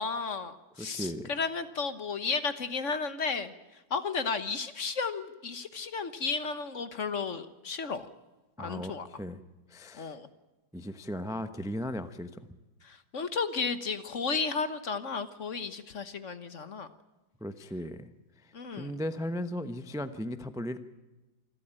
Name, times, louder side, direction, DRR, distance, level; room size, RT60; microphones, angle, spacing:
voice 1, 0.0-3.5 3.9-8.0 8.6-9.1 9.9-10.3 12.8-16.9 18.5-18.9, left 5 dB, 45° left, 12 dB, 1.3 m, -33 dB
voice 2, 0.8-1.3 8.6-9.4 9.7-10.1 10.7-12.4 17.4-18.1 18.4-20.8, equal, 5° right, 11 dB, 0.4 m, -37 dB
26.5 x 13.0 x 8.9 m, 1.1 s
omnidirectional pair, 2.1 m